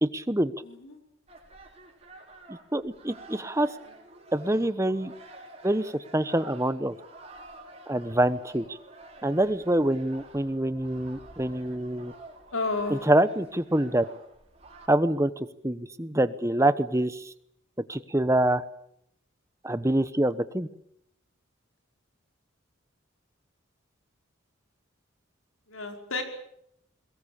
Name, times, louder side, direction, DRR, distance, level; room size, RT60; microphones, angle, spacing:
voice 1, 0.0-0.5 2.5-3.7 4.3-5.1 5.6-6.9 7.9-8.8 9.2-12.1 12.9-14.0 14.9-17.3 17.9-18.6 19.6-20.7, right 1 dB, 15° right, 13 dB, 1.0 m, -25 dB
voice 2, 0.6-1.0 3.5-3.9 12.5-13.0 25.7-26.2, left 3 dB, 85° left, 4 dB, 5.3 m, -32 dB
sound 1, 1.3-14.9, right 2 dB, 30° right, 6.1 m, -50 dB
22.5 x 21.5 x 8.8 m, 0.74 s
head